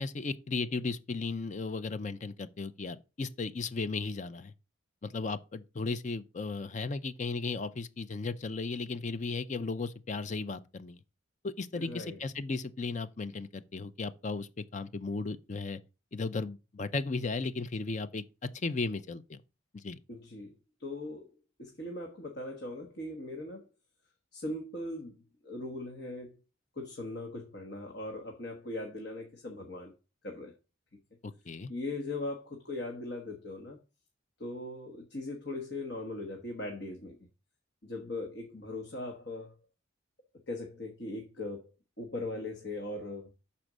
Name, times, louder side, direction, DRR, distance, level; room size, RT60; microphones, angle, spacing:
voice 1, 0.0-4.5 5.0-11.0 11.4-15.8 16.1-19.4 19.7-20.0 31.2-31.7, left 3 dB, 35° left, 0.5 m, -35 dB
voice 2, 11.7-12.2 20.1-21.3 21.6-23.7 24.3-25.2 25.4-26.4 26.8-29.9 30.2-30.5 31.7-33.8 34.4-37.2 37.8-39.5 40.5-41.7 42.0-43.3, left 2 dB, 55° left, 1.2 m, -39 dB
6.5 x 4.3 x 6.0 m
head